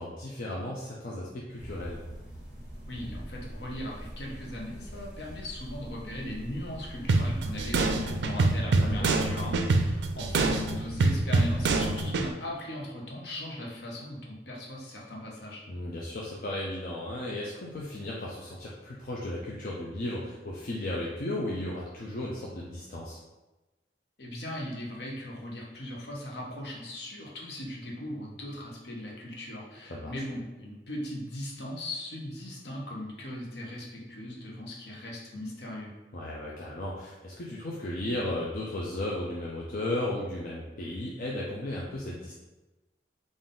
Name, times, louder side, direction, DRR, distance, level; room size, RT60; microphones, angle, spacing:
voice 1, 0.0-2.0 8.7-9.2 15.7-23.2 29.9-30.2 36.1-42.3, left 1 dB, 50° left, -4 dB, 0.5 m, -35 dB
sound 1, 1.5-8.2, equal, 15° right, 1.5 m, -43 dB
voice 2, 2.9-15.6 24.2-35.9, left 1 dB, 70° left, -2 dB, 0.9 m, -39 dB
sound 2, 7.1-12.3, right 3 dB, 75° right, 0.4 m, -25 dB
3.8 x 2.5 x 3.7 m, 1.1 s
head